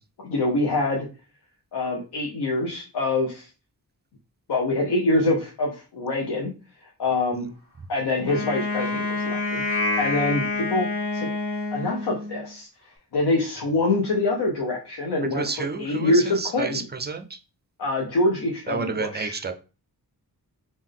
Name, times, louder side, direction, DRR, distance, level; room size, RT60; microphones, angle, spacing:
voice 1, 0.2-1.1 1.7-3.5 4.5-6.5 7.0-7.5 7.9-9.6 10.0-10.9 11.1-11.3 11.7-12.7 13.1-16.8 17.8-19.4, left 2 dB, 85° left, -1 dB, 0.8 m, -25 dB
Wind instrument woodwind instrument, 8.2-12.5, left 2 dB, 45° left, 1.9 m, -27 dB
voice 2, 15.3-17.3 18.7-19.5, right 4 dB, 30° right, 7 dB, 0.4 m, -30 dB
3.5 x 2.6 x 3.6 m, 0.33 s
wide cardioid pair, 150°, 38 cm